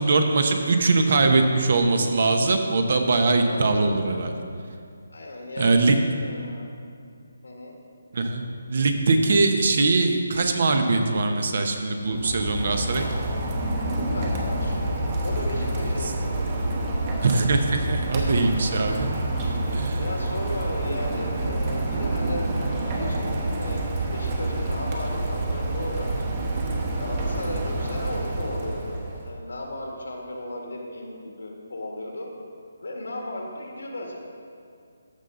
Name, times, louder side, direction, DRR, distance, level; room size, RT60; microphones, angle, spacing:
voice 1, 0.0-4.3 5.6-6.0 8.1-13.1 17.2-19.1 19.7-20.0, right 3 dB, 55° right, 5 dB, 0.9 m, -22 dB
voice 2, 3.5-4.0 5.1-5.9 6.2-6.7 7.4-7.8 13.9-14.8 15.2-16.4 20.0-26.2 27.0-32.3 32.8-34.2, left 1 dB, 85° left, 0 dB, 1.8 m, -35 dB
Rain, 12.0-29.3, right 2 dB, 30° right, 1.1 m, -27 dB
14.0 x 5.5 x 3.9 m, 2.3 s
hypercardioid pair, 160°, 0 cm